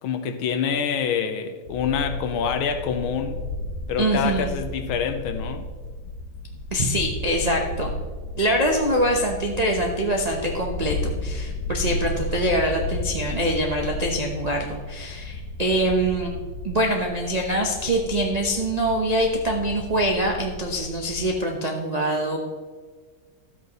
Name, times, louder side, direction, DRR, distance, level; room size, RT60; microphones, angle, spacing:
voice 1, 0.0-3.4 3.9-5.7, left 7 dB, 85° left, 8 dB, 1.6 m, -26 dB
sound 1, 1.6-21.3, left 2 dB, 50° left, 1.0 m, -33 dB
voice 2, 4.0-4.5 6.7-7.9 8.4-16.3 16.6-22.4, right 1 dB, 85° right, 0 dB, 0.3 m, -24 dB
13.0 x 8.2 x 3.0 m, 1.5 s
omnidirectional pair, 2.3 m